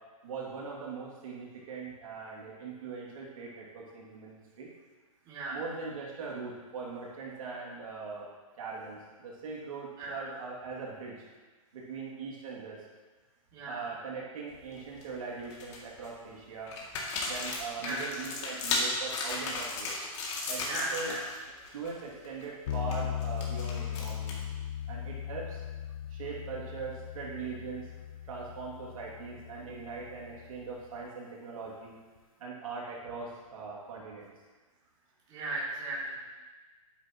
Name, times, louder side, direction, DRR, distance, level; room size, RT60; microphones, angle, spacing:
voice 1, 0.2-4.7 5.5-8.3 8.6-11.2 11.7-12.8 13.7-16.7 17.2-19.9 20.5-21.1 21.7-24.3 24.9-25.6 26.1-27.9 28.3-32.0 32.4-34.3, right 4 dB, 70° right, -4 dB, 2.7 m, -41 dB
voice 2, 5.3-5.6 10.0-10.3 13.5-13.9 17.8-18.1 20.6-21.2 35.3-36.2, right 2 dB, 25° right, -7 dB, 3.0 m, -36 dB
sound 1, 14.5-15.0 15.5-16.1 16.7-21.4 21.6-21.9 22.2-24.5, left 3 dB, 50° left, 2.6 m, -35 dB
sound 2, 22.7-30.8, left 10 dB, 75° left, 0.4 m, -38 dB
11.0 x 9.8 x 3.1 m, 1.3 s
hypercardioid pair, 145°, 18 cm